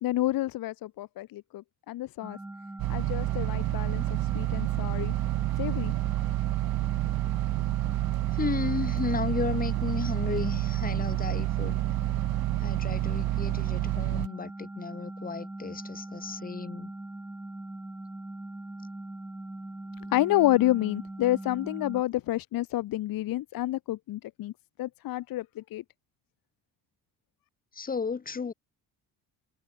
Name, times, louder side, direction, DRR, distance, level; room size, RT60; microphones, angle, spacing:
voice 1, 0.0-2.4 2.9-4.0 4.3-5.1 5.6-5.9 20.1-24.5 24.8-25.8, left 15 dB, 65° left, 1.2 m, -29 dB
sound 1, 2.2-22.0, right 1 dB, 5° right, 1.0 m, -41 dB
sound 2, 2.8-14.3, right 17 dB, 70° right, 0.8 m, -29 dB
voice 2, 8.3-11.8 12.6-16.9 27.7-28.5, left 5 dB, 25° left, 1.4 m, -34 dB
cardioid pair, 175°, 37 cm